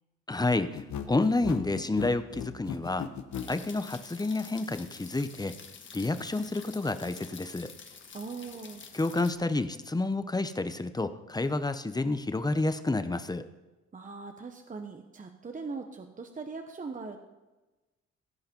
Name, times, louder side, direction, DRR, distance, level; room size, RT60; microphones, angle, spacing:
voice 1, 0.3-3.1 3.5-5.5 5.9-7.7 8.9-13.4, left 2 dB, 15° left, 11 dB, 0.7 m, -29 dB
sound 1, 0.7-3.5, left 8 dB, 65° left, 1.1 m, -36 dB
sound 2, 3.3-9.3, left 5 dB, 40° left, 1.4 m, -49 dB
voice 2, 8.1-8.8 13.9-17.2, right 4 dB, 25° right, 5 dB, 0.9 m, -40 dB
16.0 x 5.7 x 5.3 m, 1.1 s
cardioid pair, 90°, 30 cm